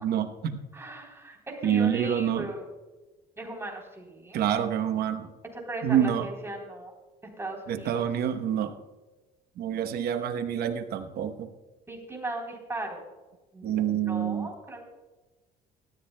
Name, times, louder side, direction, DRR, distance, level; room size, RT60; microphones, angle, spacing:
voice 1, 0.0-0.6 1.6-2.5 4.3-5.3 5.8-6.3 7.7-8.7 9.6-11.5 13.6-14.5, right 9 dB, 65° right, 8 dB, 1.0 m, -27 dB
voice 2, 0.7-2.6 3.4-4.4 5.6-6.9 7.4-8.0 11.9-13.0 13.5-14.8, right 2 dB, 15° right, 1 dB, 3.5 m, -37 dB
18.0 x 13.5 x 2.2 m, 1.2 s
cardioid pair, 110°, 17 cm